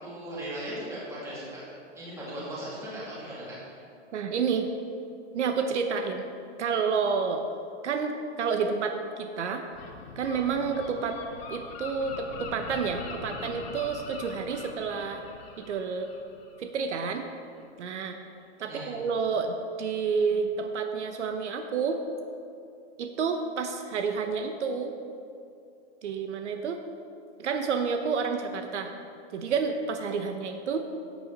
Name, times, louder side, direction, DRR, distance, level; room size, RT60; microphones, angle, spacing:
voice 1, 0.0-1.6 1.9-3.8 18.6-18.9, right 1 dB, 10° right, -8 dB, 2.6 m, -38 dB
voice 2, 4.1-4.7 5.3-6.3 6.6-7.4 7.8-9.6 10.2-11.2 11.5-15.2 15.6-16.1 16.6-17.3 17.8-18.2 18.6-22.0 23.0-24.9 26.0-26.8 27.4-28.9 29.3-30.8, right 5 dB, 70° right, 6 dB, 1.0 m, -29 dB
Gull seagull, 9.7-17.2, left 4 dB, 55° left, 1.7 m, -42 dB
14.0 x 8.2 x 4.0 m, 2.5 s
hypercardioid pair, 170°, 36 cm